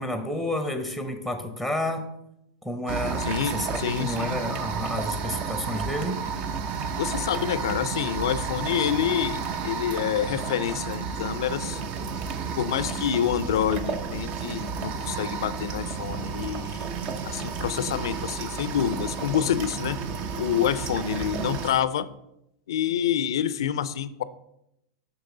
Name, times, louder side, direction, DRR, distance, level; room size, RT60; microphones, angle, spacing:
voice 1, 0.0-2.1 2.6-6.2, left 1 dB, 5° right, 7 dB, 0.8 m, -30 dB
sound 1, 2.9-21.7, right 5 dB, 45° right, 0.7 m, -32 dB
voice 2, 3.2-4.4 7.0-11.8 12.6-16.9 17.2-20.0 20.4-22.1 22.7-24.2, left 9 dB, 75° left, 16 dB, 0.4 m, -27 dB
6.7 x 6.0 x 3.9 m, 0.82 s
hypercardioid pair, 115°, 3 cm